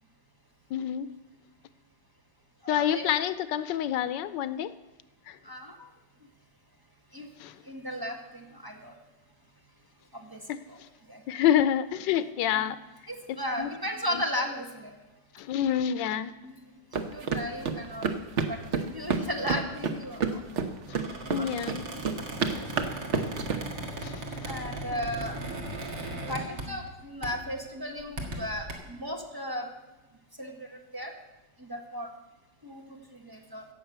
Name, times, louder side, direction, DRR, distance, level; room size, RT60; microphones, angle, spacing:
voice 1, 0.7-1.1 2.7-4.7 5.3-5.4 7.4-7.6 10.5-10.6 11.3-12.8 13.3-13.7 14.1-14.2 15.3-16.3 21.3-21.8 24.0-24.5, left 10 dB, 85° left, 14 dB, 1.3 m, -28 dB
voice 2, 2.6-3.1 5.4-5.9 7.1-7.3 7.6-8.9 10.1-10.4 10.7-10.8 11.1-11.2 13.1-14.9 16.4-18.0 18.5-20.2 21.3-21.6 21.9-22.0 24.4-25.4 26.3-29.7 30.4-31.1 31.6-32.1 32.6-33.6, equal, 15° right, 1 dB, 1.4 m, -36 dB
sound 1, 16.9-23.6, right 5 dB, 50° right, 1.1 m, -30 dB
Squeak, 20.9-26.9 27.2-27.5 28.0-28.7, right 1 dB, 70° right, 2.4 m, -38 dB
15.5 x 6.4 x 8.0 m, 1.1 s
omnidirectional pair, 1.9 m